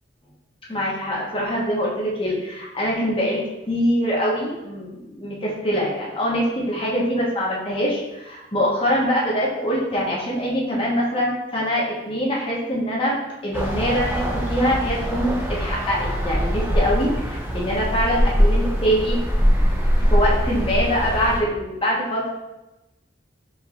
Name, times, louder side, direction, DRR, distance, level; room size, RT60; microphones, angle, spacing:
voice 1, 0.7-19.2 20.1-22.3, equal, 30° left, -5 dB, 1.1 m, -24 dB
sound 1, 13.5-21.4, equal, 15° right, 0.7 m, -22 dB
4.4 x 3.5 x 3.1 m, 0.99 s
head